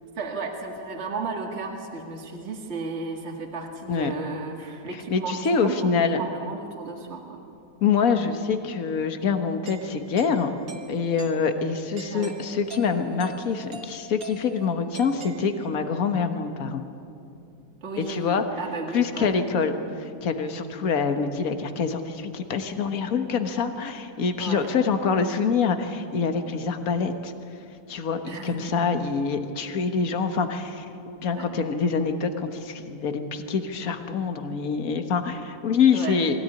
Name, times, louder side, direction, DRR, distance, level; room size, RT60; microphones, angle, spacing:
voice 1, 0.2-7.4 12.1-12.4 17.8-19.3 24.4-24.7 28.3-28.7 31.3-31.5 35.9-36.2, right 4 dB, 40° right, 1 dB, 2.1 m, -34 dB
voice 2, 5.1-6.2 7.8-10.6 10.9-16.8 18.0-18.4 18.9-27.3 27.9-36.4, left 5 dB, 55° left, 7 dB, 1.7 m, -25 dB
Doorbell, 9.7-16.0, right 3 dB, 55° right, 1.9 m, -43 dB
22.5 x 16.5 x 9.8 m, 2.6 s
omnidirectional pair, 1.8 m